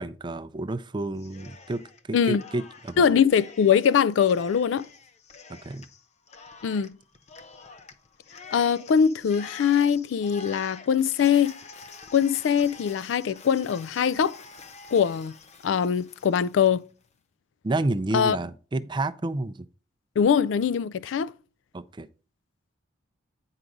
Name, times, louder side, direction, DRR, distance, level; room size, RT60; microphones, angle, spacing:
voice 1, 0.0-3.1 5.5-5.9 17.6-19.7 21.7-22.1, right 2 dB, 25° right, 0.4 m, -30 dB
Cheering, 1.2-2.0 2.3-16.8, left 4 dB, 35° left, 0.6 m, -47 dB
voice 2, 3.0-4.9 6.6-7.0 8.5-11.5 12.1-14.4 14.9-15.4 15.6-16.8 18.1-18.4 20.2-21.3, left 7 dB, 90° left, 0.4 m, -22 dB
9.0 x 4.8 x 3.8 m
head